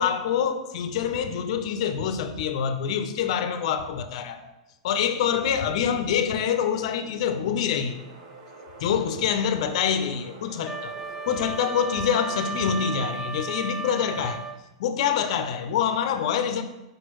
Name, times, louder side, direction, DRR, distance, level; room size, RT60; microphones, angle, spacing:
voice 1, 0.0-4.5 4.8-8.0 8.8-10.9 11.3-14.4 14.8-16.6, left 8 dB, 65° left, 0.6 m, -26 dB
sound 1, 7.7-13.2, right 2 dB, 50° right, 1.3 m, -46 dB
Wind instrument woodwind instrument, 10.6-14.6, right 4 dB, 10° right, 0.4 m, -34 dB
6.1 x 5.1 x 3.0 m
hypercardioid pair, 125°, 4 cm